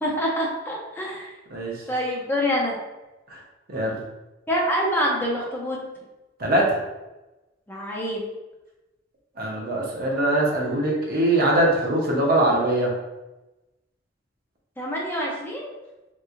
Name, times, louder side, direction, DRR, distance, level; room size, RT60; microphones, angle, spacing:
voice 1, 0.0-1.3 1.9-2.8 4.5-5.8 7.7-8.2 14.8-15.8, equal, 10° left, -4 dB, 0.6 m, -26 dB
voice 2, 3.7-4.0 6.4-6.8 9.4-12.9, right 1 dB, 50° right, -2 dB, 0.8 m, -22 dB
3.2 x 3.0 x 2.5 m, 1.0 s
head